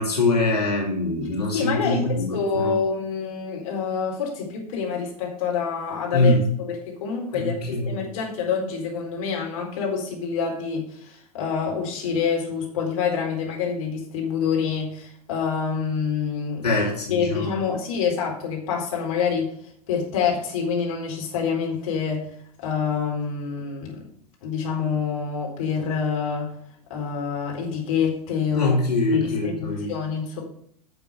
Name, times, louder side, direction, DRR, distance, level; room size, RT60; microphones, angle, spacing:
voice 1, 0.0-2.8 6.1-6.4 7.3-7.9 16.6-17.6 28.5-29.9, left 2 dB, 80° left, -3 dB, 2.8 m, -23 dB
voice 2, 1.5-7.6 7.9-16.7 17.1-19.5 19.9-22.3 22.6-24.0 24.4-26.5 26.9-28.7 29.1-30.4, left 6 dB, 60° left, 0 dB, 4.2 m, -26 dB
11.0 x 6.9 x 5.0 m, 0.66 s
figure-of-eight pair, 95°, 20 cm